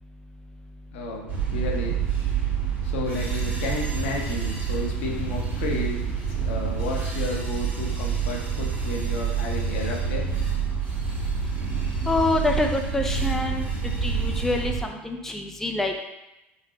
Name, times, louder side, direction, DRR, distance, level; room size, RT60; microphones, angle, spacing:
voice 1, 0.9-2.0 2.8-6.0 6.3-10.3, left 2 dB, 75° left, 0 dB, 0.8 m, -32 dB
sound 1, 1.3-14.8, right 6 dB, 30° right, 1.3 m, -27 dB
voice 2, 12.1-13.7 14.0-16.0, left 2 dB, 5° left, 3 dB, 0.4 m, -26 dB
3.9 x 2.0 x 3.9 m, 0.95 s
hypercardioid pair, 85°, 6 cm